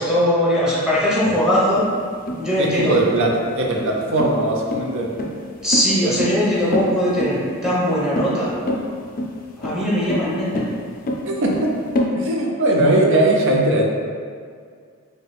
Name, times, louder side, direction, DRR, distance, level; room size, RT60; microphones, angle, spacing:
voice 1, 0.0-1.9 2.4-3.0 5.6-8.6 9.6-10.6, equal, 5° right, -8 dB, 0.9 m, -20 dB
sound 1, 1.3-12.1, left 1 dB, 40° left, 0.4 m, -27 dB
voice 2, 2.6-5.1 11.3-11.7 12.1-13.9, right 1 dB, 60° right, 0 dB, 0.5 m, -19 dB
4.7 x 2.2 x 3.3 m, 2.1 s
head